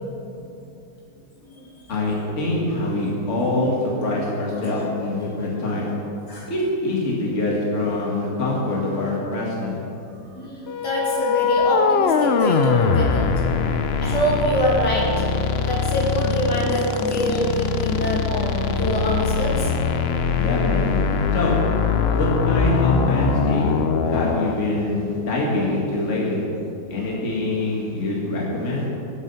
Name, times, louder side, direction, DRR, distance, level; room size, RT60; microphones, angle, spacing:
voice 1, 1.9-5.9 6.5-9.8 20.3-21.0 21.3-21.6 22.1-26.4 26.9-28.9, left 2 dB, 40° left, -4 dB, 2.5 m, -24 dB
voice 2, 10.3-13.2 14.0-15.1 15.6-19.7 26.9-27.0, equal, 65° left, -4 dB, 3.1 m, -24 dB
sound 1, 10.7-24.5, left 6 dB, 85° left, 0.5 m, -22 dB
18.5 x 8.3 x 5.7 m, 2.8 s
omnidirectional pair, 2.0 m